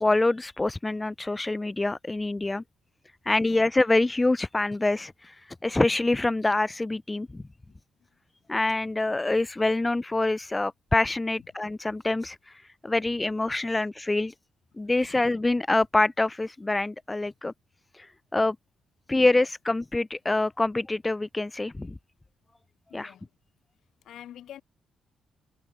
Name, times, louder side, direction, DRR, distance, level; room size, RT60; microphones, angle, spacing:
voice 1, 0.0-2.6 3.3-5.3 5.6-7.5 8.5-12.4 12.8-14.3 14.8-17.5 18.3-18.6 19.1-22.0 22.9-23.1, left 2 dB, 15° left, 0.3 m, -25 dB
voice 2, 22.9-23.3 24.0-24.6, left 11 dB, 75° left, 1.0 m, -47 dB
cardioid pair, 105°, 0 cm